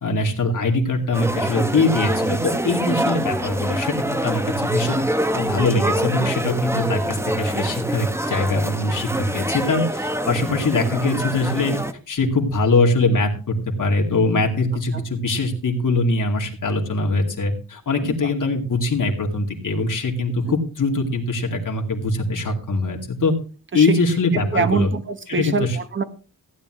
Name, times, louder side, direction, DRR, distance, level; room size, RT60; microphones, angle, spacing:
voice 1, 0.0-5.0 5.3-11.7 12.1-23.3 23.7-24.9 25.3-25.7, left 3 dB, 60° left, 2 dB, 2.5 m, -22 dB
sound 1, 1.1-11.9, right 1 dB, 5° right, 0.7 m, -25 dB
voice 2, 24.3-26.0, right 5 dB, 35° right, 10 dB, 1.0 m, -25 dB
15.5 x 9.5 x 3.1 m, 0.37 s
wide cardioid pair, 150°, 35 cm